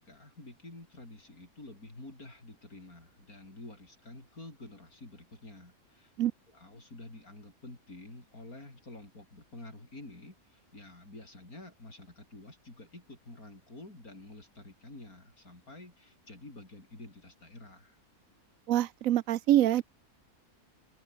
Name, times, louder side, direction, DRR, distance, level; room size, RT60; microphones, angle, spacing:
voice 1, 0.0-6.1 6.5-18.0, left 2 dB, 80° left, 7.3 m, -49 dB
voice 2, 18.7-19.8, right 12 dB, 70° right, 1.0 m, -25 dB
open air
omnidirectional pair, 1.5 m